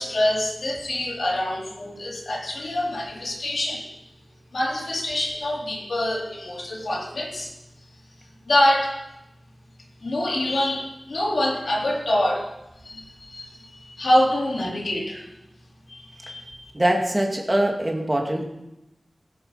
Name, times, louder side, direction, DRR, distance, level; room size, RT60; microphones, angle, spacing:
voice 1, 0.0-3.8 4.5-7.5 8.5-9.0 10.0-12.5 12.8-13.5 13.8-15.3 15.9-16.7, left 1 dB, 80° left, -2 dB, 3.2 m, -25 dB
voice 2, 16.7-18.5, right 1 dB, 25° right, 1 dB, 2.1 m, -23 dB
16.0 x 8.3 x 5.7 m, 0.91 s
wide cardioid pair, 60°, 0 cm